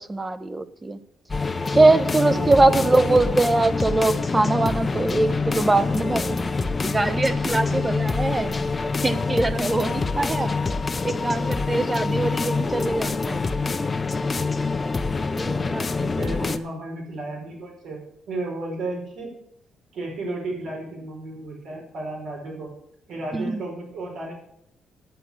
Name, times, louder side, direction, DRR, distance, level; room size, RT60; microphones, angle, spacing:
voice 1, 0.1-1.0 1.7-6.5 6.8-8.5 9.0-10.6 11.0-13.4 15.4-16.0 23.3-23.6, right 2 dB, 20° right, 12 dB, 0.9 m, -22 dB
sound 1, 1.3-16.6, left 4 dB, 30° left, 0.8 m, -26 dB
voice 2, 2.3-3.0 7.7-7.9 11.7-11.9 15.6-15.7 16.0-18.0 18.3-19.3 19.9-22.7 23.1-24.3, right 2 dB, 75° right, -1 dB, 5.2 m, -33 dB
10.0 x 9.2 x 6.8 m, 0.71 s
cardioid pair, 90°, 0 cm